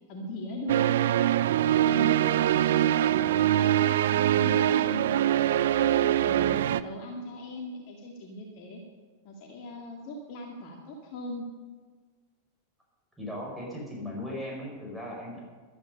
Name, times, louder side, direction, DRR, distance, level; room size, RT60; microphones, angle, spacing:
voice 1, 0.1-1.0 1.7-5.1 5.8-8.8 9.2-11.5, equal, 45° left, 1 dB, 2.1 m, -39 dB
sound 1, 0.7-6.8, right 11 dB, 60° right, 0.4 m, -23 dB
voice 2, 6.3-6.6 13.2-15.4, left 1 dB, ahead, -3 dB, 5.6 m, -38 dB
14.0 x 12.0 x 5.5 m, 1.4 s
figure-of-eight pair, 90°, 0 cm